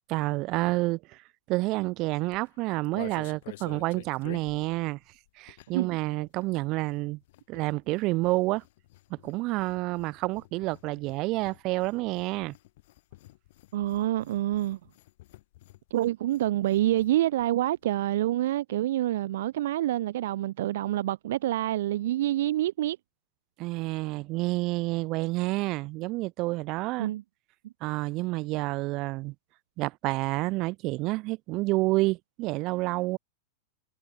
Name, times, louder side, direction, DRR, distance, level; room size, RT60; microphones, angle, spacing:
voice 1, 0.1-1.2 1.5-5.0 5.4-7.2 7.5-8.6 9.1-12.5 23.6-27.1 27.8-29.3 29.8-33.2, right 21 dB, 40° right, 1.0 m, -29 dB
sound 1, 2.2-5.9 6.2-17.1 17.4-17.5 17.7-18.0, left 17 dB, 55° left, 3.3 m, -50 dB
voice 2, 13.7-14.8 15.9-23.0 27.0-27.2, right 14 dB, 55° right, 0.5 m, -27 dB
figure-of-eight pair, 90°, 0 cm